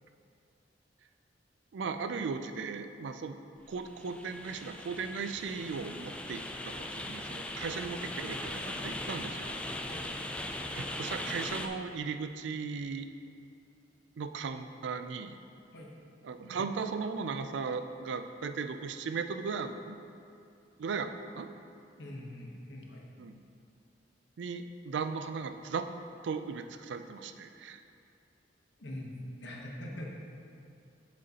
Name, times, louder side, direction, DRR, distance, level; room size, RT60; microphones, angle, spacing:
voice 1, 1.7-3.4 3.7-9.6 10.7-13.1 14.2-15.4 16.2-20.0 20.8-21.5 23.2-23.4 24.4-25.9 26.2-27.8, right 5 dB, 75° right, 9 dB, 0.4 m, -37 dB
sound 1, 3.6-11.7, left 1 dB, 5° left, 0.3 m, -39 dB
voice 2, 22.0-23.1 28.8-30.1, left 1 dB, 70° left, -1 dB, 1.0 m, -43 dB
7.8 x 6.3 x 2.9 m, 2.6 s
head